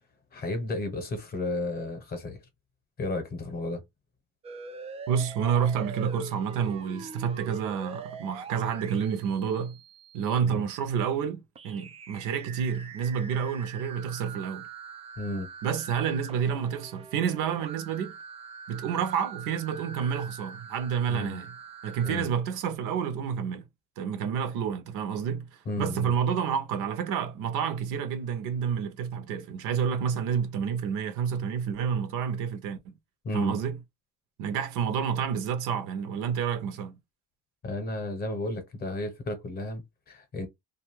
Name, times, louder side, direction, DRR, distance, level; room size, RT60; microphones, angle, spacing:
voice 1, 0.3-2.4 3.0-3.8 10.4-10.6 15.2-15.5 21.1-21.4 22.0-22.3 25.7-26.1 33.2-33.6 37.6-40.5, left 1 dB, 25° left, 0.9 m, -33 dB
sound 1, 4.4-10.4 11.6-22.3, right 5 dB, 20° right, 0.3 m, -44 dB
voice 2, 5.1-9.8 10.1-14.7 15.6-18.1 18.7-21.5 21.8-23.6 24.0-25.5 25.8-32.9 33.3-33.8 34.4-37.0, right 7 dB, 60° right, 0.7 m, -29 dB
2.6 x 2.4 x 3.0 m
cardioid pair, 140°, 34 cm